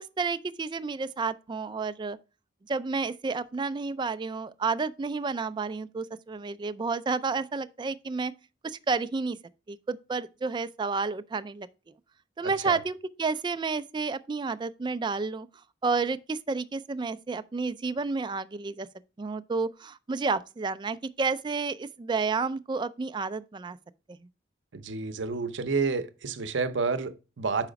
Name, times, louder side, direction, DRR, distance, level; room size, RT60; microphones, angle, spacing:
voice 1, 0.0-2.2 2.7-8.3 8.6-9.4 9.7-11.7 12.4-15.5 15.8-18.9 19.2-23.8, right 4 dB, 25° right, 0.3 m, -30 dB
voice 2, 12.4-12.8 24.7-27.7, right 4 dB, 80° right, 0.7 m, -30 dB
5.7 x 4.9 x 5.0 m
head